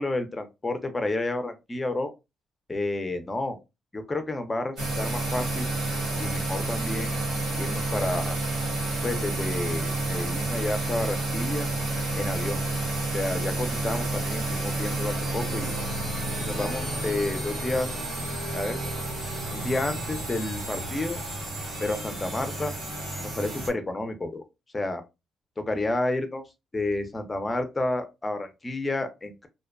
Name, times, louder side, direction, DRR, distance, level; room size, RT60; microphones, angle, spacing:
voice 1, 0.0-2.1 2.7-3.6 3.9-5.7 6.2-7.1 7.6-8.4 9.0-11.7 12.1-12.6 13.1-15.7 16.4-18.1 18.5-18.8 19.5-21.2 21.8-22.7 23.2-24.4 24.7-25.0 25.6-26.4 26.7-29.5, left 2 dB, 20° left, 8 dB, 0.5 m, -30 dB
sound 1, 4.8-23.7, right 2 dB, 85° right, 1.4 m, -30 dB
2.5 x 2.1 x 2.3 m, 0.24 s
cardioid pair, 90°, 0 cm